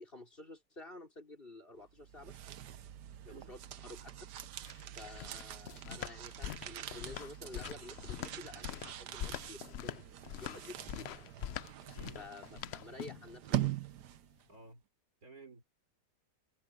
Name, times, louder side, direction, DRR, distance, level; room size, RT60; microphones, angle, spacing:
voice 1, 0.0-2.4 3.2-4.1 5.0-11.3 12.1-13.7, left 2 dB, 30° left, 4.6 m, -51 dB
sound 1, 1.9-14.4, right 12 dB, 85° right, 1.4 m, -43 dB
sound 2, 4.4-13.3, left 10 dB, 80° left, 0.5 m, -44 dB
voice 2, 14.5-14.8 15.2-15.6, right 3 dB, 60° right, 5.6 m, -53 dB
omnidirectional pair, 1.8 m